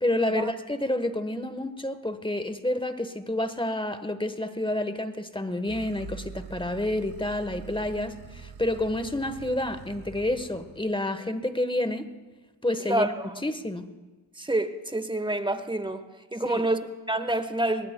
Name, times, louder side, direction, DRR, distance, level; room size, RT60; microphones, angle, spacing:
voice 1, 0.0-12.1 12.6-13.1 13.4-13.9 16.4-16.7, left 1 dB, 10° left, 10 dB, 1.2 m, -29 dB
sound 1, 5.7-10.9, right 6 dB, 60° right, 1.7 m, -44 dB
voice 2, 12.8-13.3 14.4-16.0 16.3-17.9, right 1 dB, 10° right, 10 dB, 1.2 m, -27 dB
22.5 x 20.0 x 2.2 m, 1.3 s
cardioid pair, 55°, 41 cm